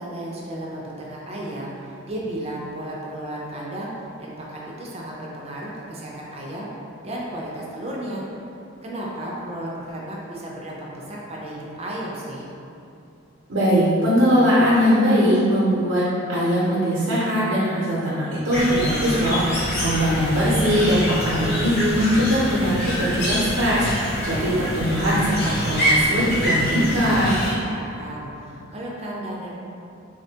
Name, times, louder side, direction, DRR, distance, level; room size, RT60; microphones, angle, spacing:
voice 1, 0.0-3.9 4.2-6.7 7.0-8.2 8.8-12.5 27.4-29.5, right 1 dB, 30° right, -4 dB, 0.4 m, -33 dB
voice 2, 13.5-16.0 16.3-27.3, equal, 85° right, -8 dB, 0.6 m, -20 dB
sound 1, 18.5-27.5, equal, 55° left, 0.6 m, -25 dB
3.5 x 2.1 x 2.7 m, 2.7 s
head